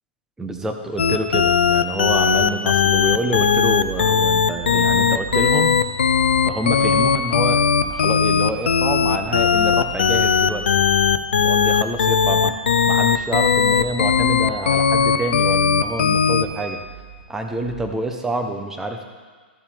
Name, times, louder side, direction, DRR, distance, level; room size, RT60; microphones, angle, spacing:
voice 1, 0.4-5.8 6.4-10.7 11.4-12.6 12.9-16.8 17.3-19.0, right 1 dB, 10° right, 4 dB, 0.9 m, -27 dB
sound 1, 1.0-16.4, left 6 dB, 85° left, 0.6 m, -18 dB
sound 2, 3.6-17.8, right 8 dB, 85° right, 2.0 m, -40 dB
13.5 x 7.1 x 3.4 m, 1.5 s
hypercardioid pair, 130°, 6 cm